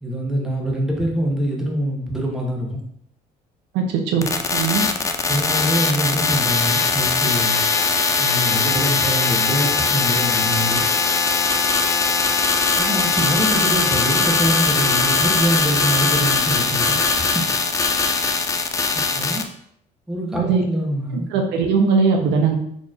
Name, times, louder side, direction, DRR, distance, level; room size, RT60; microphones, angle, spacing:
voice 1, 0.0-2.8 5.3-7.6 8.2-10.9 12.8-17.4 18.9-19.4 20.1-21.3, equal, 5° right, -1 dB, 0.8 m, -24 dB
voice 2, 3.7-4.8 20.4-20.6 21.3-22.5, right 5 dB, 85° right, 2 dB, 0.7 m, -19 dB
sound 1, 4.2-19.4, left 4 dB, 20° left, 0.3 m, -20 dB
4.3 x 3.0 x 2.4 m, 0.71 s
cardioid pair, 110°, 17 cm